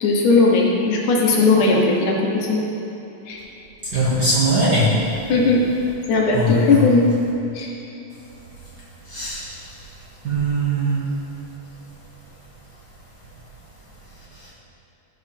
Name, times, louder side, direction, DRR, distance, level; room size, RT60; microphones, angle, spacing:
voice 1, 0.0-2.6 3.3-3.4 5.3-5.6 6.1-7.1 7.6-7.7, left 3 dB, 80° left, -2 dB, 2.6 m, -17 dB
voice 2, 3.9-4.9 6.3-6.8 9.1-9.5 10.2-11.0 14.4-14.5, right 1 dB, 45° right, -9 dB, 1.5 m, -20 dB
13.5 x 5.4 x 3.4 m, 3.0 s
omnidirectional pair, 3.5 m